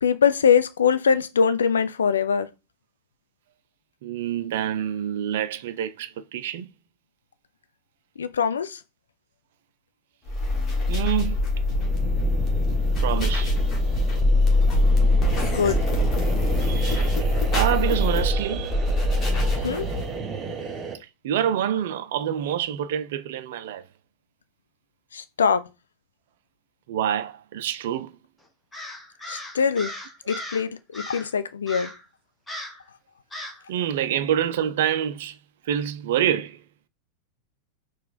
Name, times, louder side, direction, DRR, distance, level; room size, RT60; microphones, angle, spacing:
voice 1, 0.0-2.5 8.2-8.8 15.5-15.8 19.6-19.9 25.1-25.6 29.3-29.9 30.3-31.9, left 6 dB, 70° left, 0.4 m, -22 dB
voice 2, 4.0-6.7 10.9-11.6 13.0-13.5 16.6-17.2 17.5-18.8 21.2-23.8 26.9-28.1 33.7-35.4 35.7-36.6, right 10 dB, 55° right, 0.4 m, -26 dB
sound 1, 10.3-20.2, left 2 dB, 25° left, 1.4 m, -23 dB
sound 2, 11.7-21.0, right 5 dB, 25° right, 0.7 m, -33 dB
Crow, 28.7-30.7 30.9-31.3 31.7-32.0 32.5-32.8 33.3-33.6, equal, 10° left, 0.9 m, -37 dB
4.4 x 2.3 x 3.9 m
figure-of-eight pair, 90°, 0 cm